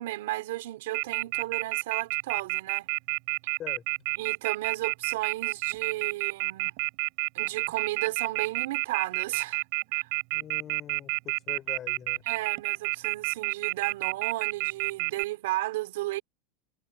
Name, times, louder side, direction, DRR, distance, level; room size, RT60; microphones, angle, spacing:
voice 1, 0.0-2.9 4.2-6.7 7.3-9.6 9.9-10.1 12.2-16.2, right 17 dB, 80° right, 4.1 m, -34 dB
Telephone, 0.9-15.2, right 35 dB, 60° right, 4.4 m, -29 dB
voice 2, 10.3-12.2, left 10 dB, 30° left, 4.6 m, -43 dB
supercardioid pair, 145°, 0 cm